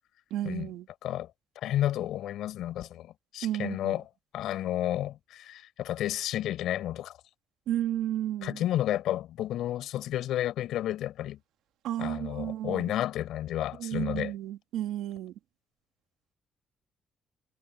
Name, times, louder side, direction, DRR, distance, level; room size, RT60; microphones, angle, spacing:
voice 1, 0.3-0.9 3.4-4.0 7.7-8.6 11.8-12.9 13.8-15.3, right 12 dB, 90° right, 1.9 m, -32 dB
voice 2, 1.6-4.0 4.3-7.1 8.4-11.4 12.0-14.3, left 12 dB, 85° left, 4.4 m, -31 dB
cardioid pair, 90°, 0 cm